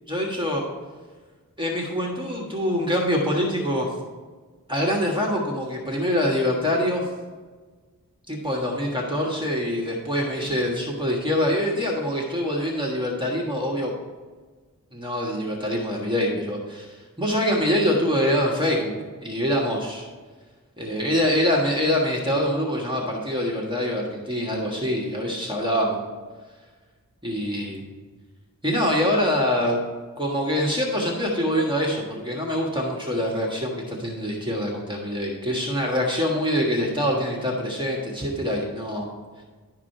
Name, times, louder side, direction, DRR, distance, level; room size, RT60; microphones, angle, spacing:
voice 1, 0.1-0.6 1.6-3.9 4.7-7.0 8.3-13.9 14.9-18.9 19.2-20.1 20.8-26.0 27.2-27.8 28.6-29.8 30.2-39.1, equal, 15° right, -3 dB, 1.5 m, -24 dB
11.0 x 4.9 x 4.5 m, 1.4 s
wide cardioid pair, 45°, 35 cm